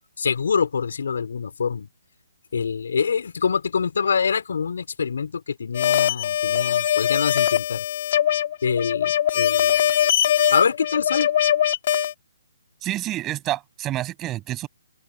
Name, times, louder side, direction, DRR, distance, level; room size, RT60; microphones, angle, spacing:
voice 1, 0.2-1.9 2.5-7.8 8.6-9.8 10.5-11.3, left 6 dB, 70° left, 4.7 m, -25 dB
sound 1, 5.7-12.1, left 10 dB, 45° left, 3.6 m, -21 dB
voice 2, 12.8-14.7, right 14 dB, 15° right, 7.5 m, -28 dB
open air
hypercardioid pair, 160°, 0 cm